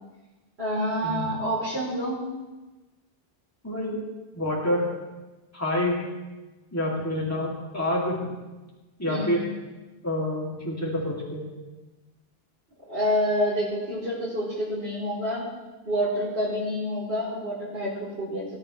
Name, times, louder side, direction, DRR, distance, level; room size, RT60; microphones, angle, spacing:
voice 1, 0.6-2.2 9.0-9.4 12.9-15.4 15.9-18.4, equal, 85° right, -10 dB, 4.2 m, -28 dB
voice 2, 3.6-4.0 4.3-4.9 5.5-6.0 6.7-8.3 9.0-9.5 10.0-11.4, left 1 dB, 15° left, -5 dB, 2.8 m, -27 dB
19.0 x 12.5 x 3.3 m, 1.2 s
omnidirectional pair, 1.0 m